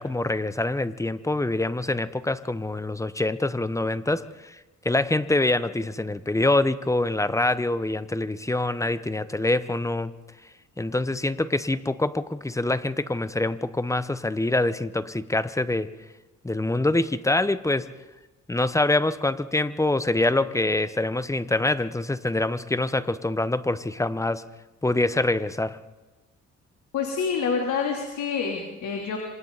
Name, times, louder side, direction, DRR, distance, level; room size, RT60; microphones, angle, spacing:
voice 1, 0.0-4.6 4.8-10.1 10.8-15.9 16.4-18.0 18.5-24.4 24.8-25.8, left 2 dB, 10° left, 14 dB, 1.0 m, -25 dB
voice 2, 26.9-29.2, left 6 dB, 70° left, 1 dB, 3.5 m, -27 dB
26.5 x 26.0 x 4.1 m, 1.2 s
cardioid pair, 90°, 30 cm